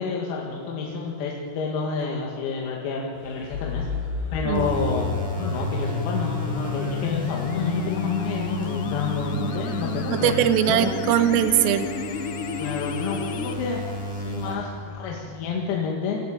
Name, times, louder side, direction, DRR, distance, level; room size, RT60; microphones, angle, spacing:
voice 1, 0.0-3.9 4.3-5.1 5.3-10.3 10.7-10.9 12.6-13.8 14.1-16.2, left 5 dB, 90° left, -1 dB, 5.0 m, -29 dB
sound 1, 3.1-14.9, equal, 55° right, 9.2 m, -48 dB
sound 2, 3.5-13.5, left 6 dB, 70° left, 3.0 m, -31 dB
sound 3, 4.5-14.5, right 1 dB, 5° right, 5.1 m, -34 dB
voice 2, 10.1-11.9, right 10 dB, 80° right, 10 dB, 3.8 m, -21 dB
28.5 x 23.0 x 8.9 m, 2.8 s
omnidirectional pair, 6.0 m